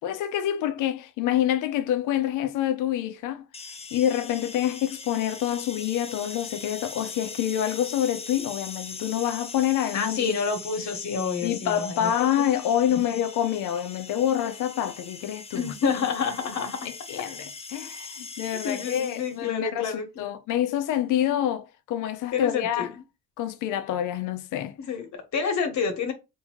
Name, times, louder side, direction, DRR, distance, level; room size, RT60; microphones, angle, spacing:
voice 1, 0.0-3.4 3.9-10.3 11.4-15.7 17.1-17.3 17.7-19.9 20.2-22.9 23.4-24.8, left 11 dB, 85° left, 0.5 m, -27 dB
sound 1, 3.5-19.5, left 4 dB, 20° left, 0.6 m, -41 dB
voice 2, 9.9-12.3 12.9-13.0 15.5-16.8 18.6-20.1 22.3-22.9 24.8-26.1, left 5 dB, 65° left, 1.2 m, -28 dB
3.5 x 2.7 x 2.9 m
cardioid pair, 90°, 30 cm